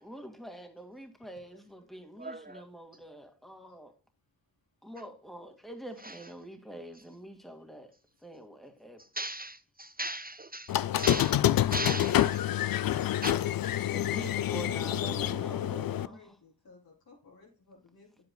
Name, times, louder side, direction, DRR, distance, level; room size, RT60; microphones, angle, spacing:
voice 1, 0.0-3.9 4.8-7.9 8.2-9.0 13.8-16.2, right 1 dB, ahead, 2.1 m, -45 dB
voice 2, 2.2-2.6 6.0-6.2 9.2-10.7 11.0-11.4 11.7-12.4 13.2-13.3, right 1 dB, 25° right, 0.4 m, -37 dB
Squeak, 10.7-16.1, left 12 dB, 75° left, 0.5 m, -27 dB
voice 3, 14.3-18.2, left 3 dB, 90° left, 4.3 m, -52 dB
9.3 x 8.5 x 2.3 m
cardioid pair, 45°, 35 cm